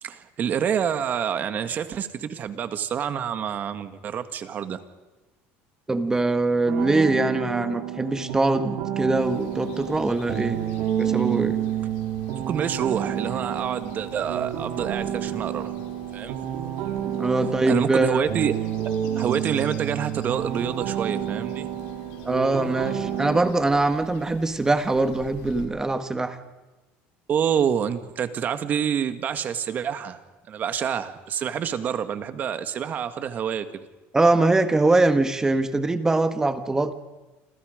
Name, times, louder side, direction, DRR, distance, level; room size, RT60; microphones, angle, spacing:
voice 1, 0.0-4.8 12.5-15.7 16.1-16.4 17.7-18.5 19.2-21.7 27.3-30.2 30.5-33.8, right 8 dB, 35° right, 10 dB, 1.8 m, -27 dB
voice 2, 5.9-10.6 11.0-11.6 17.2-18.2 22.2-26.4 34.1-36.9, right 2 dB, 10° right, 10 dB, 1.5 m, -22 dB
sound 1, 6.7-23.4, right 10 dB, 70° right, 3.8 m, -29 dB
sound 2, 9.1-25.7, left 8 dB, 90° left, 4.5 m, -47 dB
29.0 x 26.5 x 5.2 m, 1.1 s
cardioid pair, 145°, 5 cm